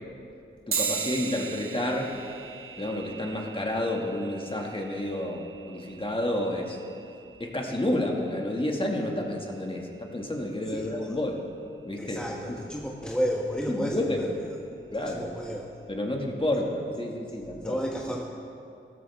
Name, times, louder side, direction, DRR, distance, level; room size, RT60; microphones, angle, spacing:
voice 1, 0.7-2.1 2.8-6.8 7.4-11.4 11.8-12.2 12.5-12.6 13.7-14.3 14.9-15.2 15.9-17.8, left 1 dB, 25° left, 0 dB, 2.1 m, -30 dB
sound 1, 0.7-10.5, right 6 dB, 75° right, 0.8 m, -39 dB
voice 2, 10.7-11.2 12.0-14.5 15.0-15.7 17.6-18.2, equal, 5° left, -1 dB, 1.3 m, -32 dB
15.5 x 13.5 x 3.6 m, 2.6 s
cardioid pair, 45°, 21 cm